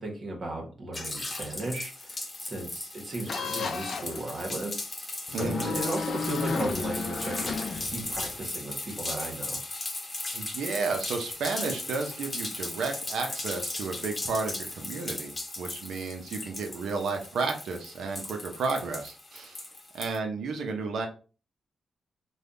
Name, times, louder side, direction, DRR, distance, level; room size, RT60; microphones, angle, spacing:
voice 1, 0.0-4.8 5.4-9.6, right 2 dB, 60° right, 0 dB, 1.2 m, -36 dB
sound 1, 0.9-20.2, left 2 dB, 35° left, 0.8 m, -37 dB
sound 2, 3.3-4.2 5.3-8.4, left 5 dB, 70° left, 0.4 m, -33 dB
voice 2, 5.3-5.8 10.3-19.6 19.9-21.1, right 4 dB, 85° right, 4 dB, 0.6 m, -32 dB
3.3 x 2.3 x 2.6 m, 0.36 s
cardioid pair, 65°, 0 cm